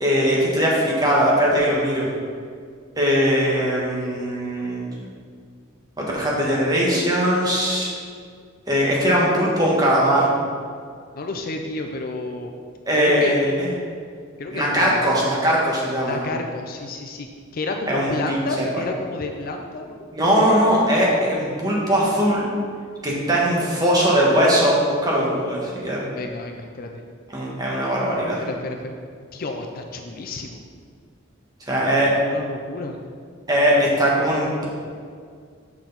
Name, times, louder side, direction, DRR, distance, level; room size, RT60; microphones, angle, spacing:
voice 1, 0.0-2.1 3.0-4.8 6.0-7.9 8.7-10.3 12.9-13.7 14.5-16.2 17.9-18.8 20.1-22.5 23.0-26.1 27.3-28.4 31.7-32.2 33.5-34.7, equal, 20° right, -4 dB, 1.4 m, -20 dB
voice 2, 11.1-12.5 12.9-13.4 14.4-15.0 16.0-20.1 26.1-27.0 28.4-29.0 29.3-30.6 32.2-33.0, left 2 dB, 45° left, 3 dB, 0.5 m, -31 dB
6.5 x 5.9 x 4.0 m, 2.1 s
head